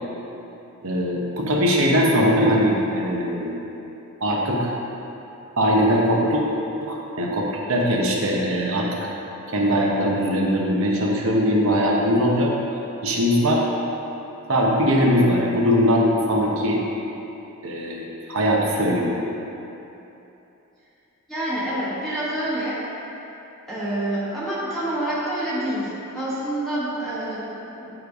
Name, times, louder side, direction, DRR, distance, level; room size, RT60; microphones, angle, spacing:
voice 1, 0.8-3.6 4.2-4.7 5.6-6.4 6.8-9.1 9.5-12.5 13.0-13.6 14.5-16.8 17.6-19.2, equal, 65° right, -2 dB, 1.0 m, -21 dB
voice 2, 21.3-22.8 23.7-27.9, right 1 dB, ahead, -11 dB, 1.3 m, -27 dB
9.1 x 3.3 x 4.8 m, 3.0 s
head